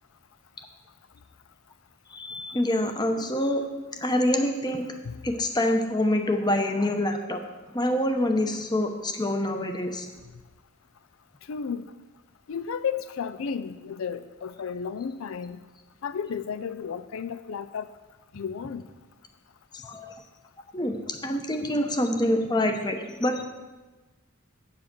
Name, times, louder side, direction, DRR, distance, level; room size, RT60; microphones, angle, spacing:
voice 1, 2.1-3.6 4.0-4.9 5.2-7.4 7.7-10.1 19.8-20.1 20.7-23.5, left 1 dB, 20° left, 5 dB, 0.9 m, -26 dB
voice 2, 11.5-11.8 12.5-15.6 16.0-17.9 18.3-18.8, left 6 dB, 75° left, 12 dB, 0.4 m, -33 dB
8.6 x 7.6 x 6.1 m, 1.2 s
head